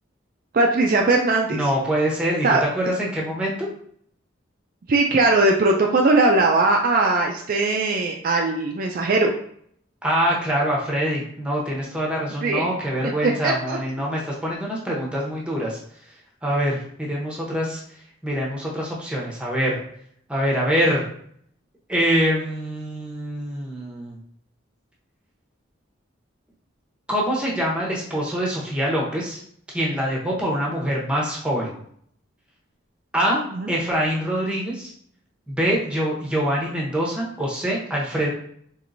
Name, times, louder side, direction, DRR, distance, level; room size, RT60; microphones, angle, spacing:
voice 1, 0.5-1.6 2.4-2.6 4.9-9.3 12.4-12.7 13.0-13.8 33.5-33.7, right 2 dB, 45° right, 2 dB, 0.3 m, -20 dB
voice 2, 1.5-3.7 10.0-15.8 16.4-17.8 18.2-19.8 20.3-21.1 21.9-24.2 27.1-29.4 29.7-31.7 33.1-33.4 33.7-34.9 35.5-38.3, equal, 5° right, -3 dB, 0.8 m, -24 dB
4.4 x 3.0 x 2.6 m, 0.65 s
head